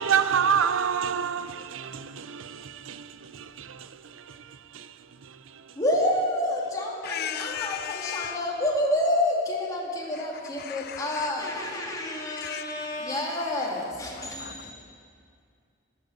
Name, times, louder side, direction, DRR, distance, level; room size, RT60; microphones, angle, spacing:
voice 1, 0.0-4.9 5.2-5.6, right 7 dB, 85° right, 0.6 m, -29 dB
voice 2, 5.8-14.7, left 1 dB, 20° left, 2.6 m, -28 dB
voice 3, 7.0-8.4 10.2-10.3 10.5-11.8 12.4-13.1 14.2-14.7, left 10 dB, 50° left, 0.4 m, -37 dB
18.5 x 9.3 x 7.9 m
head